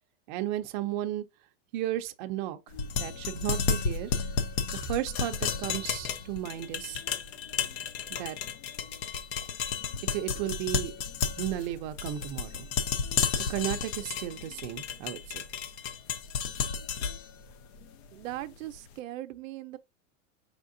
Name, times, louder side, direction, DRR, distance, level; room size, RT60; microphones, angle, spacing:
voice 1, 0.3-1.2 1.7-2.6 3.0-4.1 4.7-7.0 8.1-8.4 10.1-10.9 11.4-12.7 13.3-15.4, right 13 dB, 40° right, 0.5 m, -34 dB
sound 1, 2.7-18.8, left 6 dB, 55° left, 0.7 m, -33 dB
voice 2, 18.1-19.8, right 15 dB, 90° right, 0.6 m, -39 dB
4.9 x 3.6 x 2.6 m
supercardioid pair, 160°, 38 cm